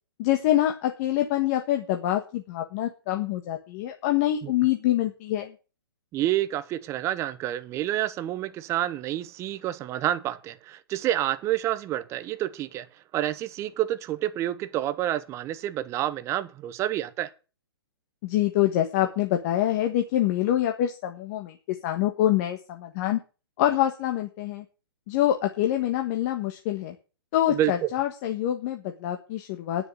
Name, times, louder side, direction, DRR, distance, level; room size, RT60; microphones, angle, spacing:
voice 1, 0.2-5.5 18.2-23.2 23.6-24.6 25.1-26.9 27.3-29.9, left 12 dB, 35° left, 1.5 m, -25 dB
voice 2, 6.1-12.9 13.1-17.3 27.5-27.9, right 13 dB, 20° right, 0.8 m, -28 dB
10.5 x 6.8 x 8.4 m
hypercardioid pair, 145°, 13 cm